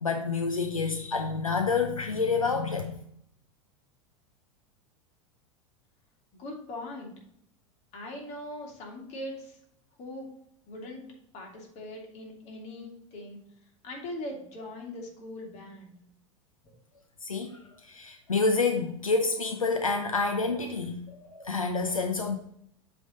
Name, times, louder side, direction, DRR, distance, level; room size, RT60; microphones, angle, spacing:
voice 1, 0.0-3.1 17.2-22.4, left 4 dB, 85° left, 0.6 m, -28 dB
voice 2, 6.3-7.1 7.9-9.6 10.0-10.3 10.7-11.0 11.3-13.4 13.8-15.9, left 1 dB, 40° left, 2.3 m, -40 dB
7.6 x 3.5 x 5.2 m
figure-of-eight pair, 85°, 17 cm